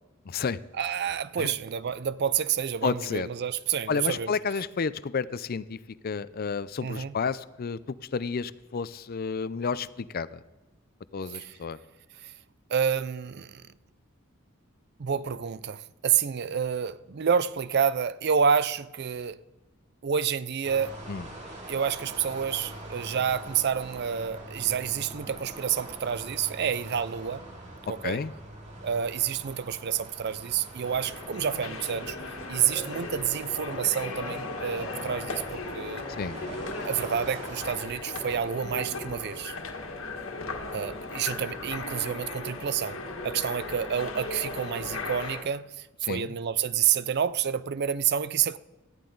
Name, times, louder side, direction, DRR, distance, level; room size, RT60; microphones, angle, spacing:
voice 1, 0.3-0.6 1.4-1.5 2.8-3.3 3.9-5.8 6.0-10.4 11.1-11.8 21.1-21.3 28.0-28.3 36.2-36.4 46.1-46.3, left 5 dB, 45° left, 0.5 m, -31 dB
voice 2, 0.8-4.3 6.8-7.1 11.3-11.6 12.2-12.3 12.7-13.7 15.0-19.4 20.0-20.9 21.7-27.4 27.9-28.2 28.8-32.2 32.5-36.0 36.5-39.6 40.7-43.0 43.2-48.6, right 8 dB, 55° right, 0.5 m, -29 dB
sound 1, 20.6-37.8, right 1 dB, 35° right, 2.6 m, -44 dB
sound 2, 30.8-45.4, left 3 dB, 75° left, 1.6 m, -37 dB
18.0 x 13.5 x 3.9 m
head